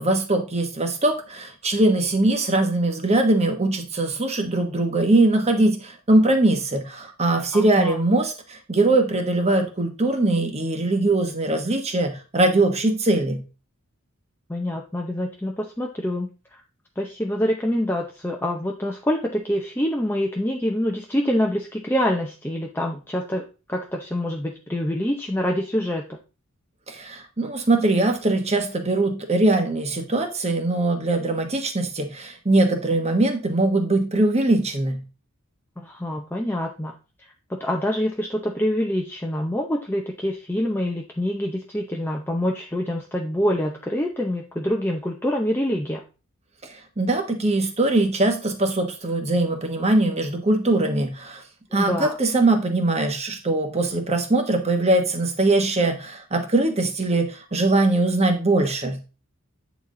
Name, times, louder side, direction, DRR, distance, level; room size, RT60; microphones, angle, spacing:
voice 1, 0.0-13.4 26.9-35.0 47.0-51.4 51.7-59.0, right 2 dB, 30° right, 5 dB, 1.1 m, -21 dB
voice 2, 7.5-8.0 14.5-16.6 17.0-26.2 35.8-36.9 37.5-46.0 51.7-52.2, equal, 10° left, 0 dB, 0.6 m, -26 dB
8.7 x 4.1 x 3.8 m, 0.33 s
head